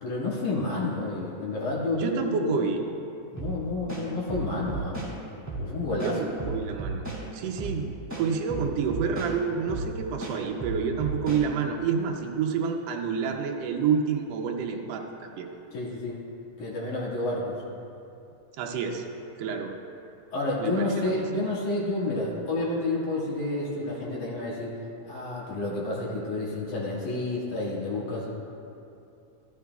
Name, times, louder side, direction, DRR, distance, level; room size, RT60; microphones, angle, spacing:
voice 1, 0.0-2.7 3.3-5.0 5.6-6.2 15.7-16.2 16.6-17.6 20.3-24.7 25.0-28.3, left 2 dB, 80° left, -6 dB, 3.4 m, -30 dB
voice 2, 1.9-2.8 6.0-6.2 6.5-7.1 7.3-15.5 18.6-19.0 19.4-19.7 20.6-21.1, right 6 dB, 75° right, 1 dB, 1.5 m, -28 dB
sound 1, 3.4-3.5 3.9-5.1 5.5-5.6 6.0-7.2 7.6-7.8 8.1-9.3 9.7-9.9 10.2-11.4, right 3 dB, 5° right, 1.7 m, -33 dB
14.0 x 13.0 x 2.3 m, 2.7 s
omnidirectional pair, 3.4 m